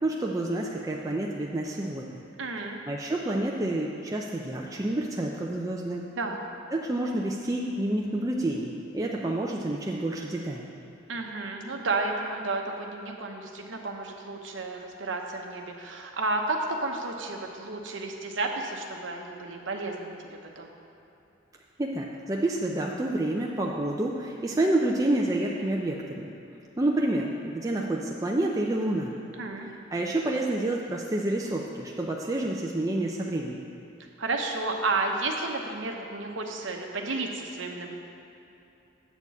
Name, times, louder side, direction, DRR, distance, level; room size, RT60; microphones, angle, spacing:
voice 1, 0.0-2.2 2.9-6.0 6.7-10.7 21.8-26.3 26.8-29.1 29.9-33.6, right 1 dB, 20° right, -2 dB, 0.5 m, -28 dB
voice 2, 2.4-2.8 6.2-6.4 11.1-20.2 20.6-20.7 29.4-29.7 34.2-38.0, right 3 dB, 70° right, 2 dB, 0.9 m, -32 dB
8.0 x 4.4 x 7.2 m, 2.9 s
head